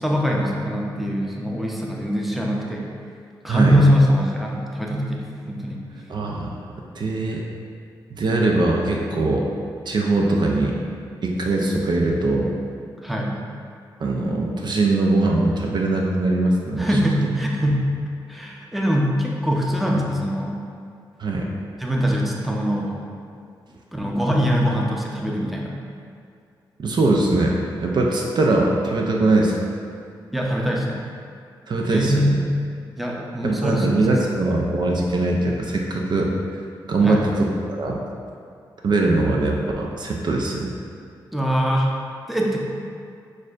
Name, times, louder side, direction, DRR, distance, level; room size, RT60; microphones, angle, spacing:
voice 1, 0.0-2.9 3.4-5.8 13.0-13.4 16.8-17.8 18.3-20.6 21.8-23.1 23.9-25.8 30.3-31.0 31.9-32.4 33.0-34.1 37.0-37.2 41.3-41.9 42.3-42.6, equal, ahead, -2 dB, 0.6 m, -22 dB
voice 2, 6.1-6.6 6.9-7.4 8.1-9.5 9.9-10.8 11.2-12.5 14.0-16.9 21.2-21.5 26.8-29.6 31.7-32.4 33.4-36.3 36.9-37.5 37.8-38.0 38.8-40.7, right 2 dB, 55° right, -1 dB, 0.5 m, -21 dB
6.1 x 2.6 x 2.4 m, 2.3 s
cardioid pair, 55°, 9 cm